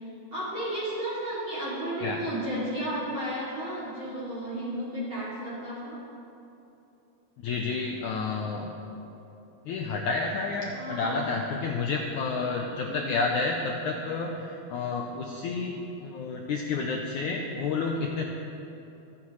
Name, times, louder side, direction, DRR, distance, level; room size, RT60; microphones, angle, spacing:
voice 1, 0.0-6.0 10.7-11.2 12.8-13.0, right 1 dB, 35° right, -8 dB, 3.2 m, -33 dB
voice 2, 7.4-8.7 9.7-18.2, left 4 dB, 80° left, 1 dB, 1.7 m, -30 dB
28.5 x 9.8 x 3.2 m, 2.8 s
omnidirectional pair, 4.4 m